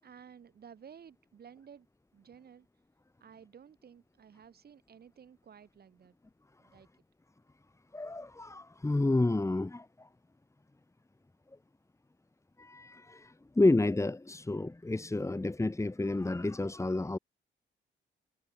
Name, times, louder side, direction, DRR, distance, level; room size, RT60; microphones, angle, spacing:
voice 1, 0.0-1.9 2.1-2.7 3.2-6.1 6.6-6.9, right 7 dB, 50° right, 6.6 m, -54 dB
voice 2, 7.9-10.1 12.6-17.2, left 2 dB, 15° left, 3.1 m, -30 dB
cardioid pair, 90°, 20 cm